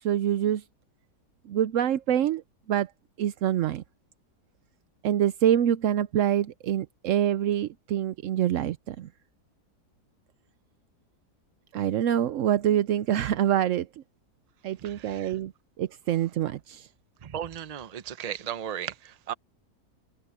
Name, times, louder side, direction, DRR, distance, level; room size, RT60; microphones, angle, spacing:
voice 1, 0.0-0.6 1.5-2.4 2.7-2.9 3.2-3.8 5.0-9.1 11.7-13.9 14.6-15.5 15.8-16.9, right 10 dB, 65° right, 0.8 m, -25 dB
voice 2, 14.8-15.3 17.2-19.3, right 9 dB, 45° right, 0.5 m, -36 dB
omnidirectional pair, 1.8 m